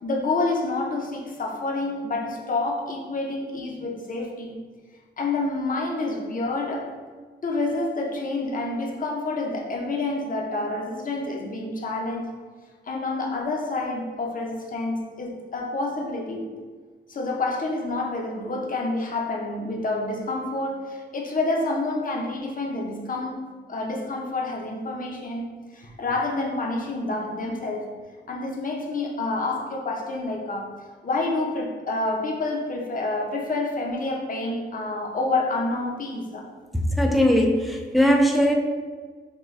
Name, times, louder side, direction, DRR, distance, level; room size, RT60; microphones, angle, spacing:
voice 1, 0.0-4.6 5.2-6.9 7.4-12.3 12.8-16.5 17.1-23.4 23.7-28.0 28.3-30.7 31.0-36.5, left 2 dB, 45° left, 0 dB, 0.7 m, -28 dB
voice 2, 36.7-38.5, equal, ahead, 2 dB, 0.4 m, -20 dB
6.0 x 2.2 x 3.2 m, 1.5 s
wide cardioid pair, 120°, 19 cm